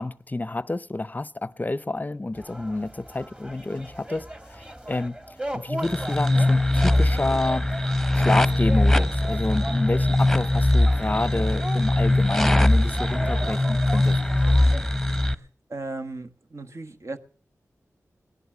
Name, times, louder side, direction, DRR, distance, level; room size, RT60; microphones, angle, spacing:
voice 1, 0.0-5.2 5.5-7.7 8.2-14.2, left 2 dB, 30° left, 0.7 m, -29 dB
sound 1, 2.3-14.8, right 1 dB, 20° right, 2.0 m, -37 dB
sound 2, 5.8-15.3, left 1 dB, 5° left, 1.1 m, -21 dB
voice 2, 15.7-17.2, right 2 dB, 50° right, 1.4 m, -35 dB
18.0 x 11.0 x 6.2 m
cardioid pair, 45°, 6 cm